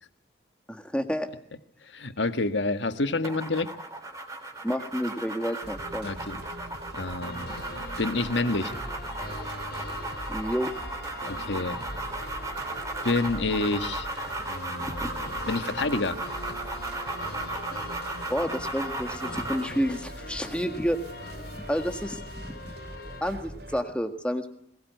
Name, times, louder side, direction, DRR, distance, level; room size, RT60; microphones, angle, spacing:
voice 1, 0.7-1.3 4.6-6.1 10.3-10.7 15.0-15.1 18.3-21.0 21.7-22.7 23.2-24.5, equal, 5° left, 6 dB, 1.7 m, -30 dB
voice 2, 1.9-3.7 6.0-6.4 6.9-7.6 8.0-8.7 11.3-11.8 13.0-16.2, left 3 dB, 85° left, 10 dB, 1.6 m, -28 dB
sound 1, 3.2-19.7, right 2 dB, 20° right, 3.7 m, -36 dB
sound 2, 5.6-23.8, right 1 dB, 60° right, 3.4 m, -42 dB
sound 3, 7.2-23.2, left 2 dB, 60° left, 4.8 m, -43 dB
21.5 x 20.0 x 9.4 m, 0.72 s
head